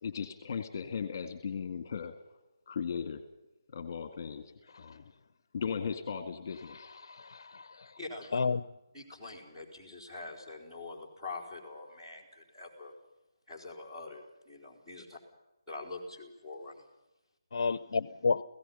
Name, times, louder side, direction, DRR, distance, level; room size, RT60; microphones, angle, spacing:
voice 1, 0.0-2.1 2.7-3.2 3.7-5.1 5.5-6.9, left 6 dB, 35° left, 7 dB, 1.9 m, -37 dB
voice 2, 7.0-7.9 8.3-8.6 17.5-18.4, left 4 dB, 55° left, 15 dB, 0.7 m, -31 dB
voice 3, 8.0-8.3 8.9-12.9 13.5-15.2 15.7-16.8, left 3 dB, 5° right, -5 dB, 3.9 m, -44 dB
29.5 x 17.0 x 5.6 m, 0.97 s
figure-of-eight pair, 165°, 3 cm